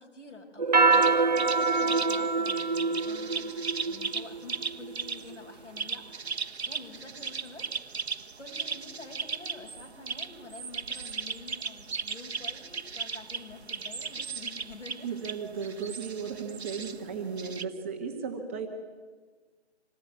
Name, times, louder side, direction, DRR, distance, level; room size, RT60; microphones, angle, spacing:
voice 1, 0.0-8.1 8.4-15.2, left 3 dB, 90° left, 2 dB, 6.4 m, -48 dB
sound 1, 0.6-5.3, right 4 dB, 35° right, 0.7 m, -25 dB
sound 2, 0.9-17.6, right 5 dB, 65° right, 1.2 m, -37 dB
voice 2, 15.0-18.7, right 6 dB, 10° right, 1 dB, 1.4 m, -35 dB
26.5 x 19.0 x 9.5 m, 1.5 s
hypercardioid pair, 175°, 35 cm